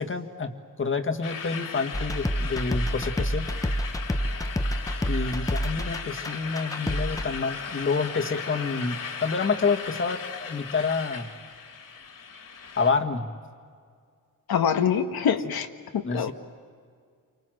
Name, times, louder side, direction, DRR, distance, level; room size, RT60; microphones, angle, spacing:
voice 1, 0.0-3.5 5.1-11.3 12.8-13.3 16.0-16.3, left 4 dB, 35° left, 5 dB, 1.7 m, -28 dB
sound 1, 1.2-12.9, left 6 dB, 65° left, 2.6 m, -37 dB
sound 2, 1.9-7.3, equal, 10° left, 0.7 m, -28 dB
voice 2, 14.5-15.7 15.9-16.3, left 7 dB, 90° left, 5 dB, 1.4 m, -24 dB
29.5 x 25.0 x 7.7 m, 2.1 s
wide cardioid pair, 160°, 36 cm